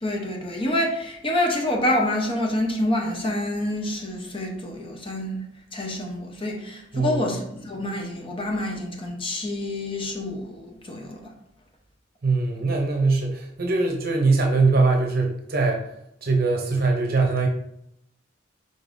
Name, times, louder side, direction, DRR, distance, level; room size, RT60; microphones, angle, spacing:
voice 1, 0.0-5.4 5.7-11.2, left 1 dB, 30° left, 1 dB, 0.8 m, -27 dB
voice 2, 6.9-7.3 12.2-15.9 16.2-17.5, right 3 dB, 55° right, 2 dB, 0.7 m, -22 dB
5.3 x 3.8 x 2.6 m, 0.79 s
head